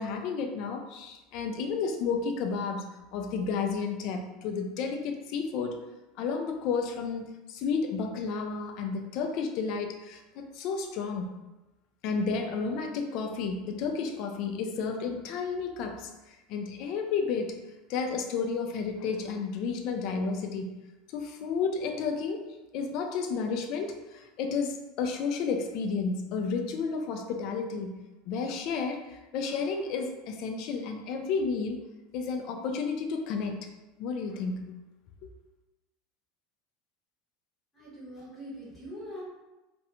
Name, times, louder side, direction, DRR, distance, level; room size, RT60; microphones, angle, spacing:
voice 1, 0.0-5.8 6.2-11.4 12.0-17.6 17.9-20.8 21.1-28.0 28.3-31.8 32.1-33.7 34.0-34.8, left 5 dB, 45° left, 4 dB, 0.3 m, -32 dB
voice 2, 37.7-39.2, equal, 15° left, -6 dB, 0.8 m, -42 dB
2.4 x 2.1 x 2.9 m, 1.0 s
supercardioid pair, 165°, 0 cm